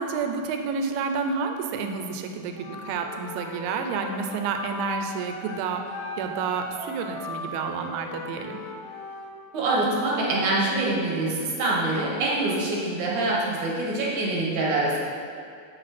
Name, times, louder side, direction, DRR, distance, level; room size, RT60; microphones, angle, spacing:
voice 1, 0.0-8.6, right 5 dB, 85° right, 5 dB, 3.1 m, -30 dB
Wind instrument woodwind instrument, 2.5-9.3, left 1 dB, 85° left, 4.5 m, -38 dB
voice 2, 9.5-15.0, right 2 dB, 60° right, -4 dB, 2.2 m, -25 dB
10.5 x 8.5 x 4.3 m, 2.3 s
omnidirectional pair, 5.3 m